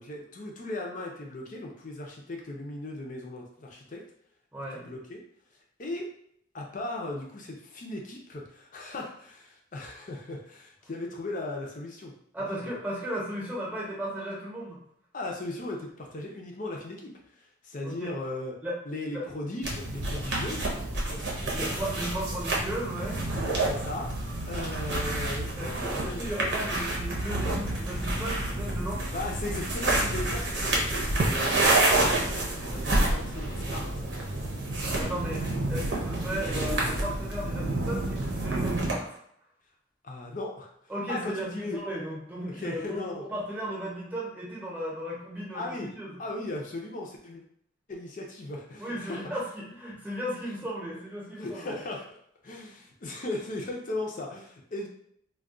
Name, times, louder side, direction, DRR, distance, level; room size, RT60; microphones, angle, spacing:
voice 1, 0.0-4.0 4.7-5.2 5.8-6.1 6.5-12.1 12.6-12.7 15.1-18.5 18.9-20.7 21.0-21.7 23.3-26.3 29.1-33.9 40.0-40.7 41.1-41.8 42.4-43.2 45.5-45.9 46.2-47.4 47.9-49.3 51.4-52.1 52.4-54.9, left 2 dB, 45° left, 0 dB, 0.5 m, -37 dB
voice 2, 4.5-4.9 12.3-14.8 17.8-18.1 18.6-18.8 19.1-19.3 21.5-23.2 25.6-25.7 26.0-29.0 35.0-35.4 35.7-39.2 40.9-43.0 43.3-46.2 48.8-51.8, right 1 dB, 10° right, -5 dB, 0.8 m, -35 dB
sound 1, 19.6-38.9, right 2 dB, 60° right, 0.7 m, -29 dB
2.3 x 2.2 x 3.6 m, 0.70 s
head